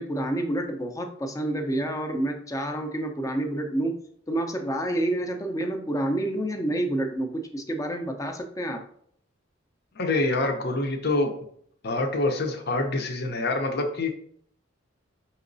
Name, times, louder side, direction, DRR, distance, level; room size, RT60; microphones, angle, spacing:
voice 1, 0.0-3.9 4.3-8.8, right 1 dB, 15° left, 5 dB, 0.5 m, -28 dB
voice 2, 10.0-11.3 11.8-14.1, left 2 dB, 55° left, 5 dB, 0.7 m, -26 dB
5.6 x 3.0 x 2.6 m, 0.64 s
head